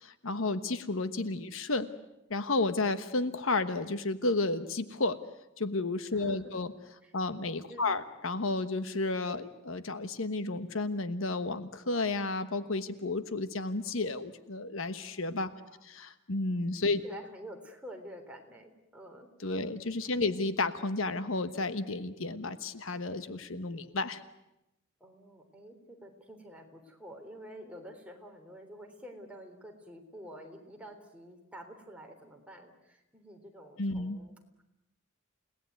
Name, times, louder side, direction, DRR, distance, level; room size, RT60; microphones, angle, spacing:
voice 1, 0.0-1.9 2.3-5.2 5.6-6.7 7.1-15.5 15.8-17.0 19.4-24.2 33.8-34.2, left 3 dB, 70° left, 11 dB, 1.2 m, -32 dB
voice 2, 6.1-6.6 7.0-7.1 7.7-7.9 15.5-15.8 17.0-19.3 20.0-20.1 25.0-34.6, equal, 5° right, 2 dB, 3.6 m, -49 dB
30.0 x 18.5 x 9.5 m, 0.91 s
head